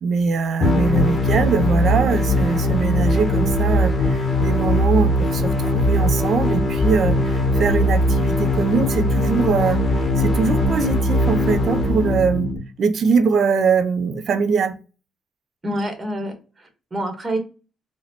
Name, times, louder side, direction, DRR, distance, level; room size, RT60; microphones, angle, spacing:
voice 1, 0.0-9.8 10.2-12.5 12.8-14.8, right 5 dB, 60° right, 0.4 m, -22 dB
sound 1, 0.6-12.6, left 1 dB, 35° left, 0.9 m, -20 dB
voice 2, 15.6-17.4, right 1 dB, 25° right, 1.1 m, -27 dB
4.0 x 2.1 x 2.8 m
cardioid pair, 90°, 0 cm